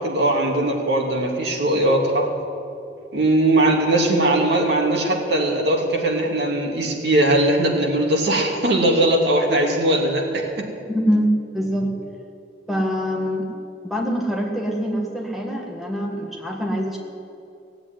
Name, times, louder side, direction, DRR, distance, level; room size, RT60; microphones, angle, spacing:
voice 1, 0.0-2.3 3.1-10.7, right 1 dB, 65° right, 0 dB, 2.5 m, -20 dB
voice 2, 10.9-12.0 12.7-13.5 13.8-17.0, equal, ahead, -1 dB, 1.7 m, -24 dB
17.0 x 7.9 x 9.6 m, 2.7 s
head